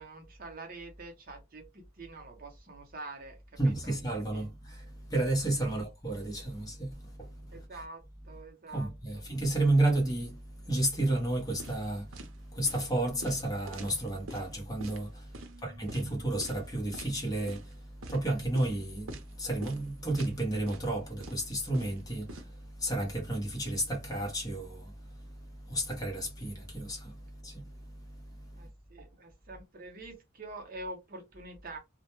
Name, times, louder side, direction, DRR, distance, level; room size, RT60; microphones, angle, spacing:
voice 1, 0.0-3.9 4.2-4.5 5.7-5.8 7.5-9.2 15.3-16.2 28.5-31.8, right 2 dB, 45° right, 0.7 m, -46 dB
voice 2, 3.6-7.6 8.7-28.7, right 1 dB, 20° left, 0.7 m, -32 dB
sound 1, 11.6-11.9 12.1-12.3 12.7-12.9 13.2-14.5 14.8-15.0 15.3-15.5 15.9-16.1 16.4-16.7 16.9-17.1 17.5-17.7 18.0-18.2 18.6-18.7 19.1-19.3 19.6-19.8 20.1-20.4 20.7-20.9 21.2-22.4, right 2 dB, 85° right, 0.5 m, -45 dB
2.1 x 2.1 x 2.9 m
head